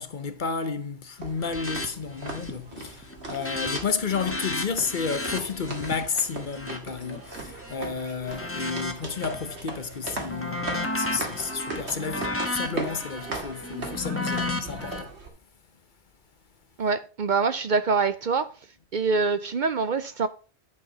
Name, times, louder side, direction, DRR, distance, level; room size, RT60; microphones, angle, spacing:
voice 1, 0.0-15.2, left 5 dB, 50° left, 0.9 m, -32 dB
sound 1, 1.2-15.3, right 3 dB, 85° right, 2.3 m, -38 dB
sound 2, 1.4-1.9 2.2-2.6 2.9-7.7 8.2-9.6 9.9-15.0, left 2 dB, 15° left, 1.2 m, -33 dB
voice 2, 16.8-18.5 18.9-20.3, right 4 dB, 55° right, 0.7 m, -25 dB
10.5 x 4.7 x 5.4 m
omnidirectional pair, 1.1 m